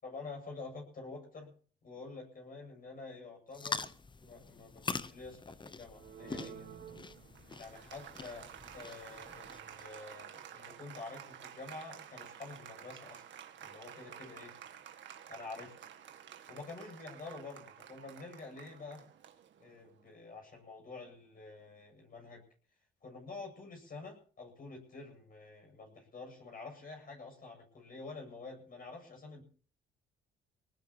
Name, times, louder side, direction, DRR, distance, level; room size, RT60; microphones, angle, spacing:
voice 1, 0.0-1.5 1.8-3.9 4.2-6.7 7.6-13.2 13.6-14.5 15.3-15.8 16.5-19.0 19.6-22.4 23.0-29.4, left 3 dB, 45° left, 1 dB, 8.0 m, -48 dB
sound 1, 3.5-9.8, left 4 dB, 25° left, 0.8 m, -44 dB
Applause, 5.9-20.0, right 9 dB, 65° right, 1.9 m, -51 dB
23.5 x 19.0 x 3.0 m, 0.44 s
cardioid pair, 90°, 20 cm